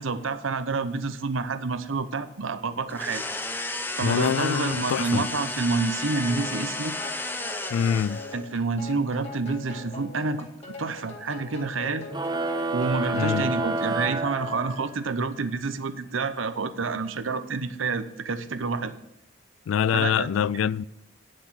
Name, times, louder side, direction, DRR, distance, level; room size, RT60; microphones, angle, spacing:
voice 1, 0.0-3.2 4.0-6.9 8.3-10.5 10.8-12.1 12.7-19.0 19.9-20.7, right 4 dB, 75° right, 0.8 m, -28 dB
sound 1, 2.9-8.5, left 2 dB, 10° left, 0.7 m, -33 dB
voice 2, 4.0-5.3 7.7-8.2 13.1-13.4 19.7-20.8, left 8 dB, 75° left, 0.3 m, -25 dB
sound 2, 6.2-13.6, left 3 dB, 30° left, 2.3 m, -42 dB
sound 3, 12.1-15.1, right 2 dB, 20° right, 0.8 m, -29 dB
9.6 x 7.6 x 6.3 m
head